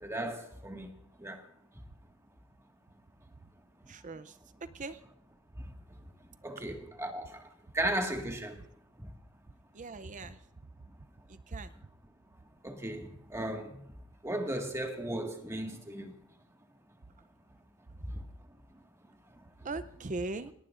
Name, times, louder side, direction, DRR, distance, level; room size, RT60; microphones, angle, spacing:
voice 1, 0.0-0.9 1.2-1.4 5.6-5.7 6.4-7.4 7.7-8.6 9.0-9.1 12.6-13.8 14.2-16.1, right 1 dB, 15° right, 1.8 m, -36 dB
voice 2, 3.9-4.4 4.7-5.0 9.7-10.4 11.3-11.7 19.6-20.5, right 3 dB, 35° right, 0.6 m, -39 dB
30.0 x 18.0 x 2.5 m
head